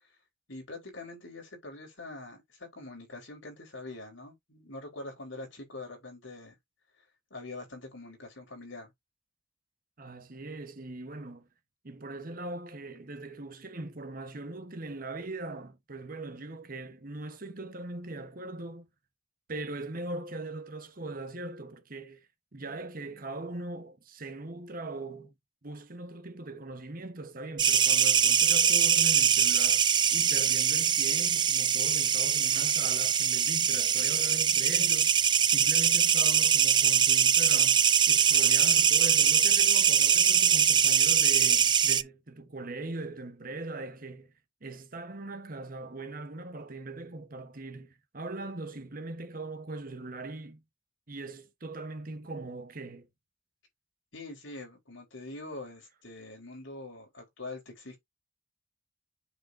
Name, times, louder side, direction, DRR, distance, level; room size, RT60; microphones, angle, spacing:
voice 1, 0.5-6.6 7.3-8.9 54.1-58.0, left 2 dB, 70° left, 4.4 m, -44 dB
voice 2, 10.0-11.5 11.8-18.9 19.5-25.3 25.6-35.2 35.5-44.3 44.6-50.6 51.1-53.1, right 2 dB, 45° right, 1.1 m, -40 dB
sound 1, 27.6-42.0, right 8 dB, 25° right, 0.4 m, -23 dB
7.8 x 6.4 x 2.6 m
head